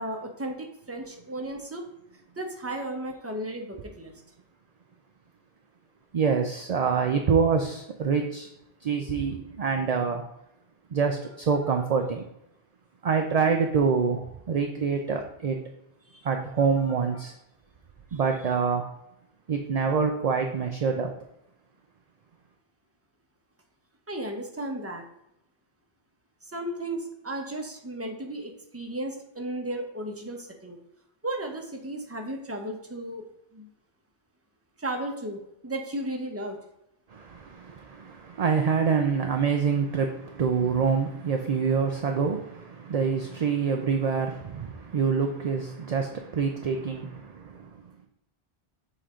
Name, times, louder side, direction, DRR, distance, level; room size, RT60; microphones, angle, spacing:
voice 1, 0.0-1.8 2.4-4.1 16.1-16.2 16.8-17.2 24.1-25.0 26.5-30.8 31.2-33.2 33.5-33.7 34.8-36.6, right 1 dB, 15° right, 2 dB, 0.9 m, -34 dB
voice 2, 6.1-8.5 8.8-10.2 10.9-12.2 13.0-15.6 16.2-17.3 18.1-18.9 19.5-21.1 37.1-47.7, right 5 dB, 45° right, 4 dB, 0.5 m, -26 dB
6.8 x 4.3 x 3.7 m, 0.81 s
omnidirectional pair, 1.1 m